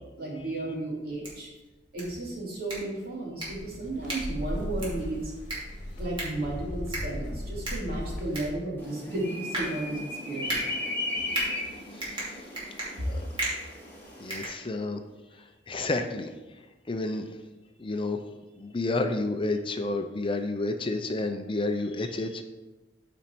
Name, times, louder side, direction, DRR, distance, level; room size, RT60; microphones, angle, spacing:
voice 1, 0.2-1.5 1.9-5.3 6.0-10.8, right 2 dB, 60° right, -4 dB, 2.7 m, -34 dB
sound 1, 1.0-15.1, right 1 dB, 30° right, 2.7 m, -38 dB
sound 2, 3.5-8.5, left 1 dB, 45° left, 1.7 m, -37 dB
sound 3, 8.8-14.4, left 2 dB, 10° left, 2.3 m, -36 dB
voice 2, 11.9-12.4 13.0-13.3 14.2-15.0 15.3-16.3 16.9-17.3 17.8-18.2 18.6-22.4, left 2 dB, 30° left, 6 dB, 0.5 m, -30 dB
8.9 x 5.2 x 4.5 m, 1.1 s
head